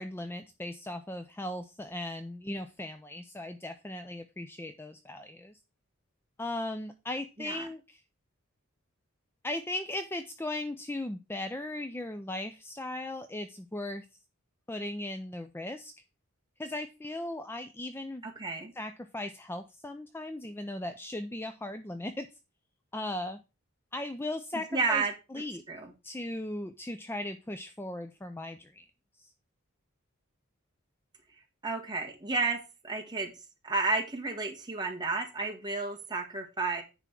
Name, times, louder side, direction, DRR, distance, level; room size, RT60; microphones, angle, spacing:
voice 1, 0.0-5.5 6.4-8.0 9.4-14.1 14.7-15.9 16.6-18.2 18.8-22.3 22.9-23.4 23.9-25.0 25.3-25.6 26.0-28.9 29.2-29.3, left 1 dB, 10° left, 8 dB, 0.4 m, -37 dB
voice 2, 7.4-7.7 18.2-18.7 24.5-25.1 25.7-25.9 31.6-32.6 32.8-33.3 33.6-36.8, right 3 dB, 20° right, 2 dB, 1.5 m, -31 dB
9.9 x 3.5 x 5.8 m, 0.29 s
head